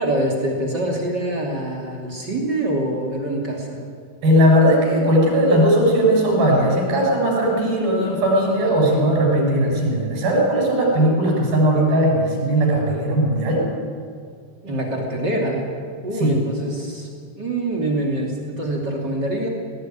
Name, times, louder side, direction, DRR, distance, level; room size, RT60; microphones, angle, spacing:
voice 1, 0.0-3.8 14.6-15.7 16.0-19.5, right 1 dB, 30° right, -1 dB, 3.0 m, -25 dB
voice 2, 4.2-13.6 16.2-16.4, equal, 75° right, -1 dB, 7.8 m, -18 dB
19.0 x 17.5 x 9.4 m, 2.1 s
omnidirectional pair, 4.3 m